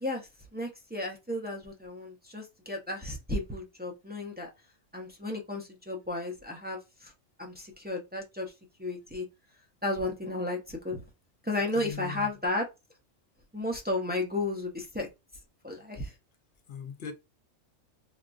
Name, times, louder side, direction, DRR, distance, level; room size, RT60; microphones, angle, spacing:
voice 1, 0.0-4.5 4.9-7.1 7.4-8.5 8.8-9.3 9.8-11.0 11.4-12.7 13.5-15.1 15.6-16.1, left 2 dB, 15° right, 0.3 m, -33 dB
voice 2, 11.7-12.3 16.7-17.1, left 6 dB, 55° left, 0.8 m, -39 dB
3.5 x 2.3 x 2.5 m
omnidirectional pair, 1.3 m